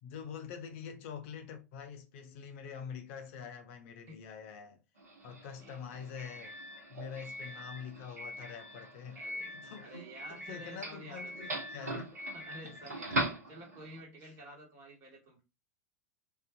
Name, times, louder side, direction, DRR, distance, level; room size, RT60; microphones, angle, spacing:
voice 1, 0.0-4.8 5.2-6.6 6.9-9.2 9.5-9.9 10.3-12.1 12.6-12.7 13.1-13.2 14.2-14.3, left 7 dB, 50° left, 0.4 m, -45 dB
Doorbell, 5.0-14.0, right 1 dB, 75° right, 1.0 m, -41 dB
voice 2, 9.1-9.5 9.8-11.6 11.9-12.0 12.3-15.4, right 1 dB, 35° right, 1.2 m, -51 dB
2.5 x 2.3 x 2.3 m
figure-of-eight pair, 90°, 9 cm